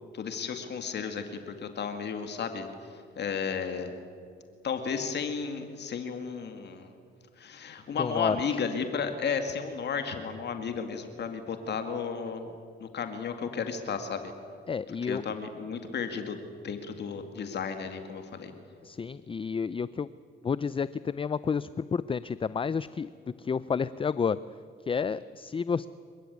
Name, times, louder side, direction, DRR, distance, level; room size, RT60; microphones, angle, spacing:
voice 1, 0.1-4.0 4.6-6.9 7.4-12.5 12.8-14.3 15.0-18.5, left 6 dB, 60° left, 7 dB, 2.2 m, -33 dB
voice 2, 8.0-8.6 14.7-15.2 18.8-20.1 20.4-23.1 23.4-24.4 24.9-25.9, left 6 dB, 25° left, 16 dB, 0.5 m, -30 dB
28.5 x 15.5 x 9.5 m, 2.4 s
cardioid pair, 90°, 20 cm